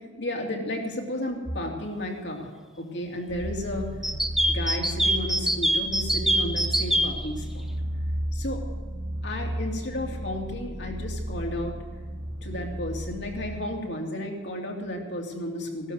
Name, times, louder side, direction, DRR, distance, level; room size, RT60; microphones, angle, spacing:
voice 1, 0.2-2.5 2.8-3.9 4.5-7.7 8.3-8.6 9.2-11.7 12.4-15.9, left 1 dB, 65° left, 0 dB, 2.9 m, -33 dB
sound 1, 3.3-13.6, equal, 45° right, 3.2 m, -33 dB
sound 2, 4.0-7.1, right 1 dB, ahead, 0.9 m, -23 dB
17.0 x 12.0 x 6.7 m, 1.5 s
head